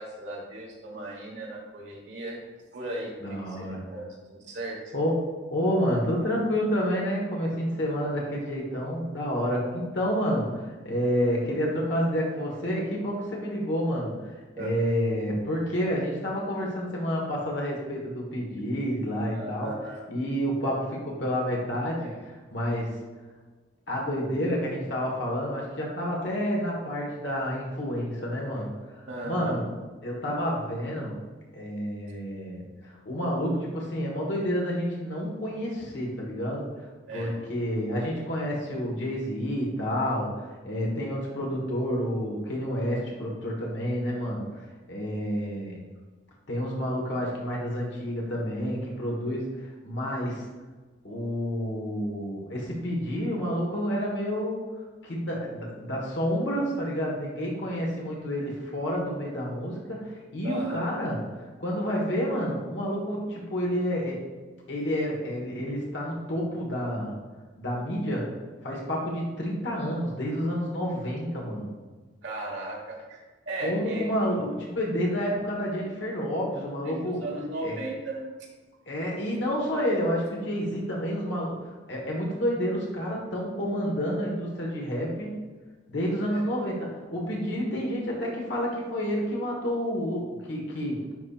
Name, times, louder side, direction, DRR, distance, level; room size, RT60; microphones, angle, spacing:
voice 1, 0.0-2.4 2.7-4.9 14.6-14.8 19.3-20.1 22.0-22.2 29.1-29.6 37.1-37.4 60.4-60.9 72.2-74.1 76.8-78.3 86.3-86.4, right 1 dB, 70° right, -2 dB, 1.3 m, -36 dB
voice 2, 3.2-3.8 4.9-5.2 5.5-14.1 14.6-19.7 20.1-22.9 23.9-29.7 30.0-31.1 31.5-36.7 37.1-45.9 46.5-50.5 51.0-54.6 55.0-61.2 61.6-64.2 64.7-67.2 67.6-68.3 68.6-71.7 73.6-77.2 77.6-77.8 78.9-85.3 85.9-91.0, equal, 70° left, -2 dB, 1.4 m, -29 dB
10.5 x 4.3 x 2.4 m, 1.3 s
head